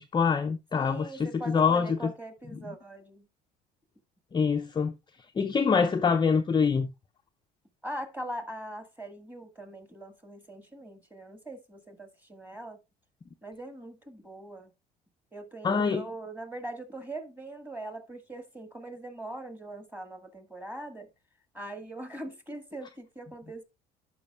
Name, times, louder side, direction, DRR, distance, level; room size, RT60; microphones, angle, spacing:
voice 1, 0.0-2.0 4.3-4.9 5.4-6.9 15.6-16.0, left 5 dB, 20° left, 0.5 m, -25 dB
voice 2, 0.7-3.3 7.8-12.8 13.4-14.7 15.3-21.1 21.5-23.6, right 1 dB, 10° right, 1.6 m, -41 dB
11.5 x 5.0 x 2.3 m
hypercardioid pair, 65°, 21 cm